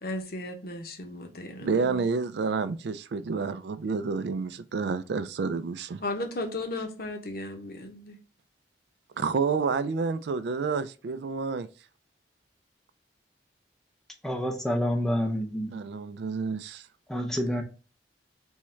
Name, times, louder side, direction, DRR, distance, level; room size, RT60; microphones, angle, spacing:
voice 1, 0.0-2.1 6.0-8.2, left 2 dB, 55° left, 0.8 m, -35 dB
voice 2, 1.6-6.0 9.2-11.7 15.7-16.8, right 5 dB, 65° right, 0.3 m, -29 dB
voice 3, 14.2-15.7 17.1-17.6, equal, ahead, 0.6 m, -28 dB
3.6 x 3.1 x 4.3 m
head